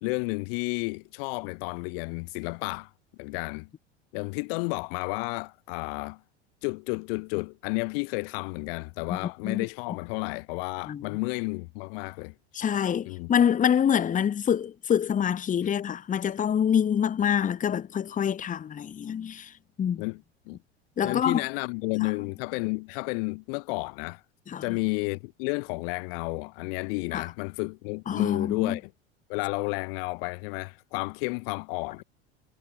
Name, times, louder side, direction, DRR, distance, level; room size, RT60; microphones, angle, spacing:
voice 1, 0.0-2.9 3.2-3.7 4.1-6.2 6.6-12.3 13.0-13.3 20.0-20.6 21.0-24.2 24.6-28.9 29.3-32.0, left 33 dB, 55° left, 0.9 m, -32 dB
voice 2, 12.5-19.5 19.8-20.0 21.0-21.4 24.5-24.8 27.1-27.3 28.1-28.8, left 8 dB, 25° left, 1.0 m, -26 dB
hypercardioid pair, 80°, 33 cm